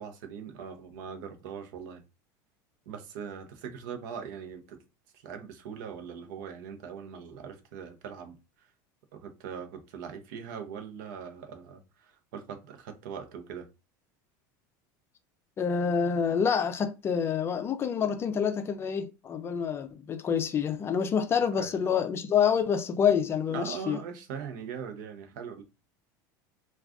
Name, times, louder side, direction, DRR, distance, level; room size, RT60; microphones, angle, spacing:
voice 1, 0.0-2.0 2.9-4.8 5.1-8.7 9.1-13.7 21.6-21.7 23.5-25.6, right 7 dB, 75° right, 0.6 m, -41 dB
voice 2, 15.6-24.0, left 7 dB, 25° left, 0.4 m, -27 dB
2.4 x 2.3 x 3.5 m
supercardioid pair, 140°, 10 cm